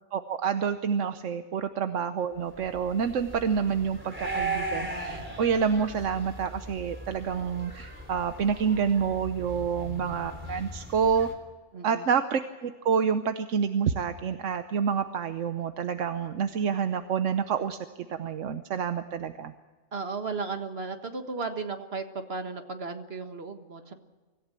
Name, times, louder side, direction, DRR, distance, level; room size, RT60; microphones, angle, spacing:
voice 1, 0.1-11.3 11.8-17.8 18.1-19.5, right 7 dB, 85° right, 9 dB, 1.2 m, -28 dB
sound 1, 2.5-11.3, right 2 dB, 10° right, 3.4 m, -38 dB
voice 2, 11.7-12.1 19.9-23.9, right 4 dB, 55° right, 7 dB, 1.8 m, -35 dB
25.5 x 15.0 x 7.6 m, 1.3 s
omnidirectional pair, 1.2 m